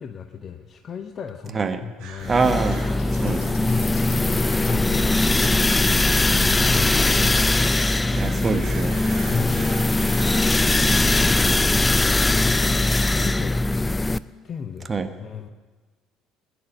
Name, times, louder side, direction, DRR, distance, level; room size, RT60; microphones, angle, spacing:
voice 1, 0.0-2.4 3.1-4.1 4.6-8.3 9.3-9.9 11.8-13.6 14.4-14.9 15.2-15.5, left 6 dB, 40° left, 6 dB, 0.9 m, -36 dB
sound 1, 2.0-11.0, right 5 dB, 60° right, 3.7 m, -43 dB
sound 2, 2.2-14.2, left 2 dB, 15° left, 0.5 m, -20 dB
voice 2, 2.3-2.8 3.2-3.7 8.1-9.1 14.9-15.1, right 4 dB, 25° right, 8 dB, 1.4 m, -24 dB
sound 3, 2.4-7.4, left 3 dB, 70° left, 3.7 m, -37 dB
20.0 x 10.0 x 6.7 m, 1.3 s
figure-of-eight pair, 55°, 0 cm